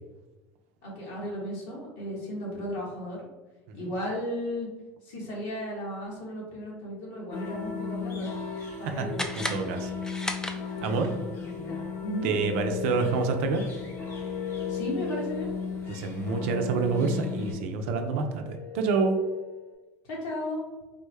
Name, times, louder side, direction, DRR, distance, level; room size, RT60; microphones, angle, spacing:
voice 1, 0.8-3.2 3.7-4.7 5.0-8.3 8.8-9.2 10.8-12.3 14.7-15.5 20.0-20.6, equal, 70° left, -3 dB, 1.4 m, -35 dB
sound 1, 7.3-17.5, left 5 dB, 40° left, 1.0 m, -36 dB
voice 2, 8.9-9.9 10.8-11.1 12.2-13.6 15.9-19.2, right 4 dB, 75° right, 5 dB, 0.5 m, -28 dB
sound 2, 9.1-11.1, left 1 dB, 10° left, 0.4 m, -35 dB
sound 3, 11.9-19.8, left 10 dB, 55° left, 1.3 m, -39 dB
3.6 x 2.1 x 3.3 m, 1.2 s
hypercardioid pair, 85°, 7 cm